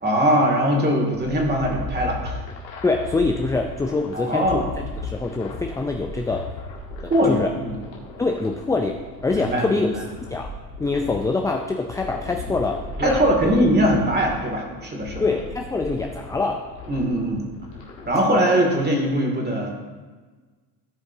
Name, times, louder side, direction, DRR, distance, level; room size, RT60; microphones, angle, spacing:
voice 1, 0.0-2.3 4.1-4.6 7.1-7.8 9.3-9.9 13.0-15.2 16.9-17.5 18.1-19.7, equal, 20° right, 0 dB, 2.3 m, -21 dB
sound 1, 1.1-18.2, left 2 dB, 90° left, 1.9 m, -36 dB
voice 2, 2.8-4.7 5.0-6.5 7.0-7.5 8.2-9.9 10.3-10.5 10.8-13.5 15.2-16.7, left 3 dB, 10° left, 3 dB, 0.4 m, -25 dB
15.5 x 5.2 x 2.7 m, 1.4 s
hypercardioid pair, 80°, 49 cm